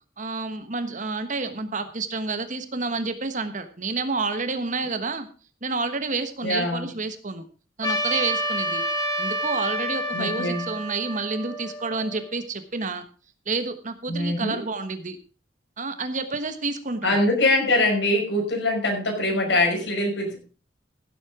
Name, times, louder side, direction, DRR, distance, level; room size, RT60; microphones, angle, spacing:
voice 1, 0.2-5.3 5.6-7.4 7.8-8.8 9.2-13.0 13.5-15.2 15.8-17.1, right 3 dB, 45° right, 10 dB, 1.2 m, -29 dB
voice 2, 6.4-6.9 10.1-10.6 14.1-14.6 17.0-20.3, left 1 dB, 75° left, 1 dB, 5.8 m, -23 dB
Trumpet, 7.8-12.3, equal, 20° left, 2.2 m, -29 dB
16.0 x 7.7 x 4.9 m, 0.36 s
head